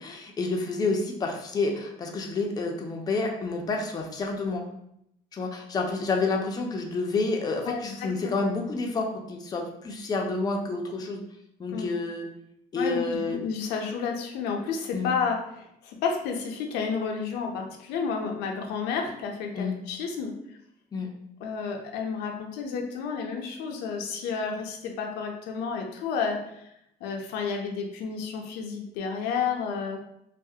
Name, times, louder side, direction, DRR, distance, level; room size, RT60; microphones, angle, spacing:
voice 1, 0.0-4.6 5.3-11.2 11.6-12.3 12.7-13.4 14.9-15.1 19.6-19.7 20.9-21.1, left 3 dB, 25° left, 2 dB, 0.4 m, -29 dB
voice 2, 7.6-8.0 11.7-11.9 12.7-13.0 13.3-20.3 21.4-26.7 27.0-30.0, left 5 dB, 90° left, 2 dB, 0.5 m, -31 dB
2.3 x 2.0 x 2.7 m, 0.77 s
cardioid pair, 110°, 17 cm